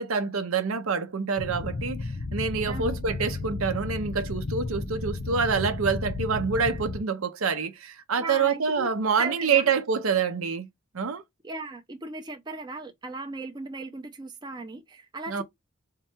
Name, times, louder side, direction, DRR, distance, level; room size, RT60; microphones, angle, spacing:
voice 1, 0.0-10.7 10.9-11.2 15.3-15.4, right 5 dB, 70° right, 0.6 m, -27 dB
sound 1, 1.4-7.0, left 3 dB, 50° left, 0.7 m, -33 dB
voice 2, 2.7-3.0 8.2-8.9 9.2-9.7 11.4-15.4, right 3 dB, 20° right, 0.5 m, -37 dB
3.7 x 2.3 x 4.3 m
head